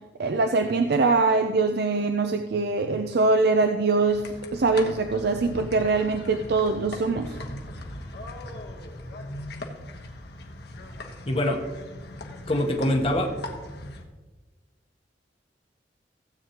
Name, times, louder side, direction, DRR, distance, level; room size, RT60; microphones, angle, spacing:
voice 1, 0.2-4.3 4.5-7.4, right 3 dB, 60° right, 6 dB, 0.5 m, -23 dB
sound 1, 4.0-14.0, left 1 dB, 60° left, 1.2 m, -39 dB
voice 2, 11.3-11.6 12.5-13.4, left 1 dB, 30° left, 2 dB, 1.1 m, -24 dB
16.0 x 8.3 x 2.9 m, 1.3 s
head